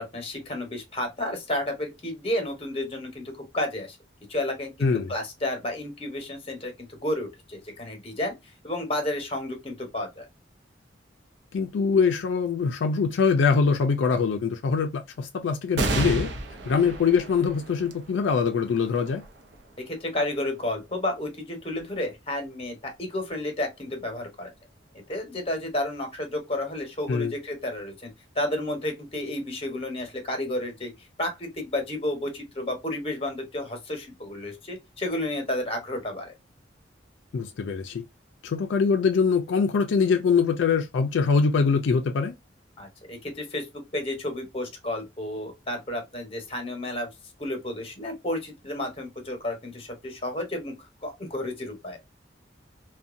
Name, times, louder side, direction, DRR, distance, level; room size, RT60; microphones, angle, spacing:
voice 1, 0.0-4.0 4.3-8.3 8.6-10.3 19.9-24.5 25.1-28.1 28.3-30.9 31.2-36.3 42.8-47.1 47.4-50.7 51.0-52.0, left 1 dB, 30° left, 0.9 m, -31 dB
voice 2, 4.8-5.1 11.5-16.3 16.7-19.2 27.1-27.3 37.3-38.0 38.4-42.3, left 5 dB, 80° left, 0.4 m, -23 dB
sound 1, 15.7-22.6 23.2-23.3 24.5-25.0, right 2 dB, 65° right, 0.5 m, -34 dB
2.6 x 2.2 x 2.4 m
head